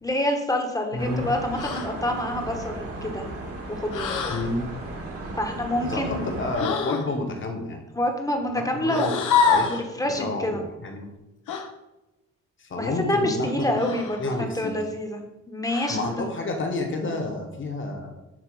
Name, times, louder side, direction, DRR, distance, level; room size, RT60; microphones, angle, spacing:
voice 1, 0.0-3.2 3.8-4.1 5.4-6.3 7.9-9.2 9.7-10.6 12.8-15.2 15.5-16.0, left 1 dB, 10° left, 3 dB, 1.2 m, -27 dB
voice 2, 0.9-1.3 4.3-4.7 5.9-7.8 8.8-9.9 10.2-11.1 12.6-13.8 14.2-14.7 15.9-18.1, left 2 dB, 40° left, 3 dB, 1.5 m, -30 dB
sound 1, 1.0-6.6, right 1 dB, 50° right, 1.7 m, -35 dB
sound 2, 1.5-1.9 3.9-4.5 6.5-7.1 8.9-9.8 11.5-11.7 13.8-14.3 15.7-16.2, left 6 dB, 80° left, 0.9 m, -25 dB
7.7 x 3.3 x 4.9 m, 1.0 s
cardioid pair, 90°, 30 cm